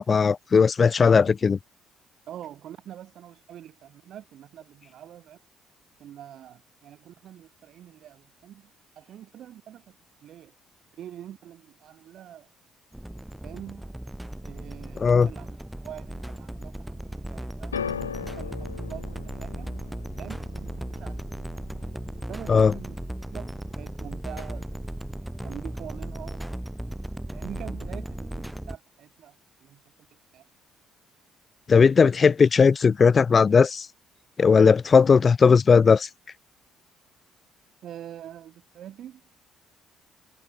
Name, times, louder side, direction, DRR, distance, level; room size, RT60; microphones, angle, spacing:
voice 1, 0.0-1.6 15.0-15.3 22.5-22.7 31.7-33.9 34.4-36.1, left 5 dB, 35° left, 0.4 m, -18 dB
voice 2, 2.3-5.4 6.0-8.7 9.0-10.0 10.2-10.5 11.0-12.5 13.4-13.9 14.4-17.8 18.2-19.7 20.2-20.7 21.0-21.3 22.3-23.0 23.3-24.7 25.4-26.7 27.3-29.8 30.1-30.5 37.8-39.2, right 11 dB, 55° right, 3.8 m, -44 dB
sound 1, 12.9-28.8, right 1 dB, 5° right, 1.4 m, -36 dB
sound 2, 17.7-24.0 24.3-24.9 25.7-25.8, left 7 dB, 80° left, 3.0 m, -40 dB
figure-of-eight pair, 45°, 0 cm